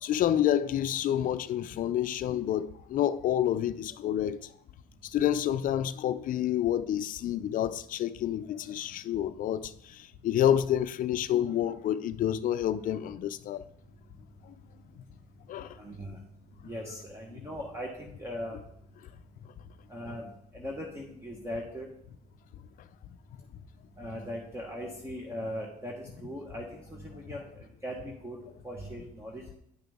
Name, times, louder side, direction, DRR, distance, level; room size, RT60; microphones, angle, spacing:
voice 1, 0.0-4.5 5.1-13.6 14.5-14.6 15.5-15.8 17.3-17.4, left 11 dB, 55° left, 0.5 m, -29 dB
voice 2, 15.7-16.2 16.6-18.6 19.9-21.9 24.0-29.4, equal, 15° right, 1.3 m, -39 dB
9.5 x 5.9 x 3.6 m
cardioid pair, 110°, 17 cm